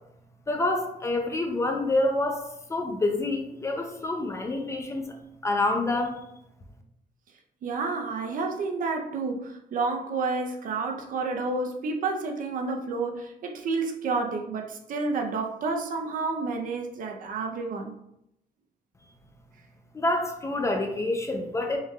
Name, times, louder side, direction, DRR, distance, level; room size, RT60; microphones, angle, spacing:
voice 1, 0.5-2.4 2.7-5.2 5.4-6.2 19.9-21.8, left 2 dB, 20° left, 4 dB, 0.5 m, -27 dB
voice 2, 7.6-17.9, right 3 dB, 60° right, 3 dB, 0.6 m, -30 dB
5.5 x 3.2 x 2.3 m, 0.78 s
cardioid pair, 155°, 16 cm